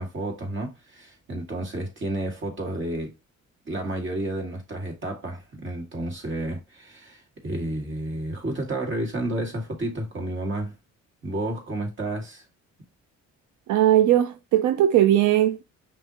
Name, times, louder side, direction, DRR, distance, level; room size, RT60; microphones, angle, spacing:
voice 1, 0.0-3.1 3.7-10.7 11.2-12.4, right 1 dB, 40° right, 2.1 m, -31 dB
voice 2, 13.7-15.6, right 12 dB, 75° right, 0.5 m, -19 dB
5.6 x 2.8 x 2.9 m
cardioid pair, 90°, 30 cm